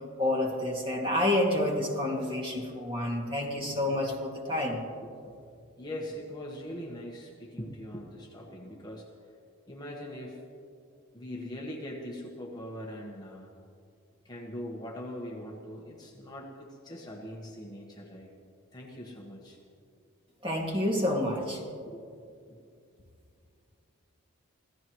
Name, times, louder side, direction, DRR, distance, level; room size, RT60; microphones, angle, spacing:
voice 1, 0.2-4.8 20.4-21.6, left 1 dB, 25° right, -1 dB, 2.2 m, -29 dB
voice 2, 5.0-5.3 5.8-9.1 9.7-10.4 11.1-13.5 14.2-18.3 18.7-19.6 21.9-22.0 22.5-22.6, equal, 20° left, -1 dB, 1.3 m, -41 dB
27.0 x 15.5 x 3.1 m, 2.4 s
head